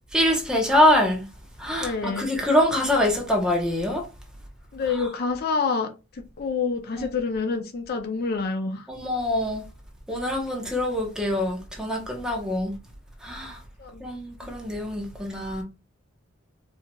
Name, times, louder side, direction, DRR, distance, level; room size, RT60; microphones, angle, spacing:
voice 1, 0.1-1.2 1.6-4.1 4.9-5.1 6.9-7.1 8.9-9.7 10.1-12.7 13.2-13.6 14.0-15.6, left 1 dB, 5° right, 0.9 m, -24 dB
voice 2, 1.8-2.3 4.7-5.9 6.4-8.8 13.8-14.1, left 4 dB, 50° left, 0.5 m, -27 dB
4.5 x 2.7 x 2.2 m
head